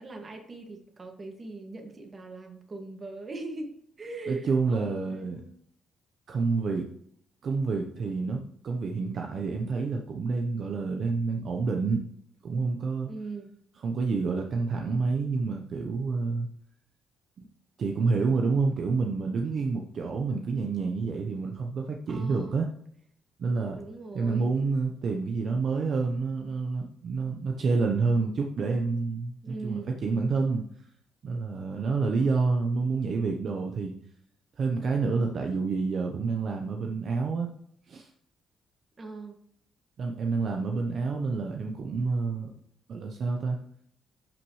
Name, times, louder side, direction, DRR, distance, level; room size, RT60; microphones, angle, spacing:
voice 1, 0.0-5.6 13.1-13.5 22.1-22.6 23.7-24.5 29.4-30.0 32.0-32.4 39.0-39.4, right 3 dB, 35° right, 3 dB, 2.0 m, -40 dB
voice 2, 4.3-5.4 6.3-6.9 7.4-12.1 12.4-13.1 13.8-16.5 17.8-22.7 23.4-23.8 24.1-30.6 31.2-33.9 34.6-37.5 37.9-38.1 40.0-42.5 42.9-43.6, right 4 dB, 55° right, 2 dB, 0.9 m, -28 dB
12.0 x 6.0 x 3.2 m, 0.67 s
cardioid pair, 90°, 0 cm